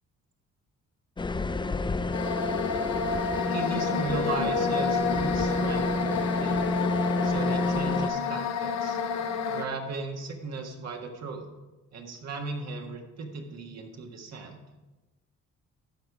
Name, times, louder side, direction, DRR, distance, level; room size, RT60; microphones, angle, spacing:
sound 1, 1.2-8.1, left 2 dB, 15° left, 0.5 m, -29 dB
sound 2, 2.1-9.7, left 5 dB, 60° left, 0.8 m, -29 dB
voice 1, 3.5-6.7 7.2-9.0 9.5-11.4 11.9-14.6, right 3 dB, 60° right, 2 dB, 1.6 m, -36 dB
12.5 x 4.7 x 4.9 m, 1.1 s
cardioid pair, 90°, 30 cm